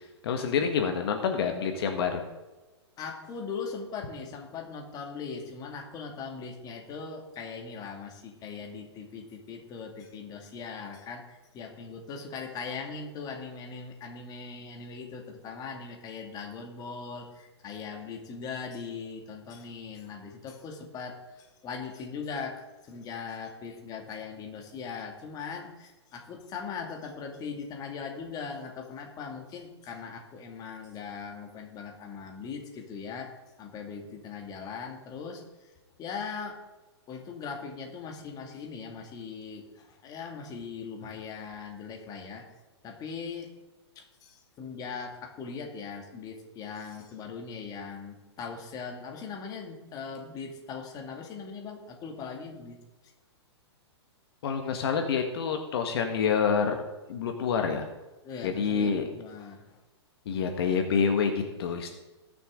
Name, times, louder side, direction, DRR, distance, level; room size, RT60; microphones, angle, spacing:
voice 1, 0.0-2.2 54.4-56.8 57.1-57.9 58.4-59.0 60.2-61.9, left 6 dB, 60° left, 4 dB, 1.5 m, -27 dB
voice 2, 3.0-35.7 36.0-36.6 37.1-42.5 42.8-43.5 44.0-52.8 58.2-59.8, left 5 dB, 25° left, 2 dB, 2.2 m, -40 dB
20.0 x 7.0 x 3.8 m, 1.1 s
hypercardioid pair, 130°, 15 cm